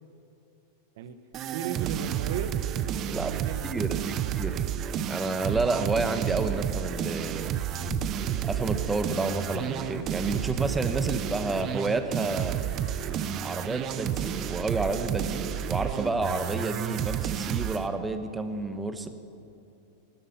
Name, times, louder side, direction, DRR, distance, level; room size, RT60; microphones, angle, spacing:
sound 1, 1.3-17.9, right 10 dB, 40° right, 0.7 m, -31 dB
voice 1, 1.5-2.5 3.0-3.7 3.9-4.2, right 8 dB, 65° right, 10 dB, 1.1 m, -36 dB
voice 2, 3.6-4.6 5.1-7.5 8.4-12.6 13.4-19.1, right 3 dB, 10° right, 9 dB, 1.1 m, -30 dB
sound 2, 7.8-17.3, left 5 dB, 45° left, 1.5 m, -47 dB
18.5 x 12.0 x 5.8 m, 2.7 s
hypercardioid pair, 110°, 0 cm